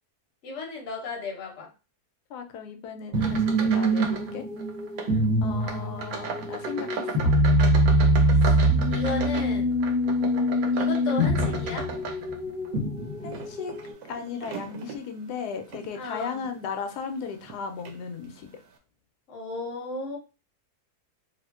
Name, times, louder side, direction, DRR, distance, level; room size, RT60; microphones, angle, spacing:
voice 1, 0.4-1.7 3.1-3.5 5.0-5.3 8.3-8.5 8.9-9.7 10.2-11.9 15.9-16.5 19.3-20.2, left 2 dB, 55° left, 0 dB, 1.1 m, -35 dB
voice 2, 2.3-4.4 5.4-7.3 13.2-13.8 14.1-18.6, left 6 dB, 85° left, 6 dB, 1.1 m, -36 dB
sound 1, 3.1-13.9, equal, 40° right, 0.8 m, -24 dB
sound 2, 3.1-4.3 4.6-5.1 5.6-12.7 13.2-15.0 15.6-15.9 16.4-16.6 17.4-17.6 17.9-18.0, right 6 dB, 70° right, 1.0 m, -36 dB
3.4 x 2.5 x 2.3 m, 0.31 s
omnidirectional pair, 1.7 m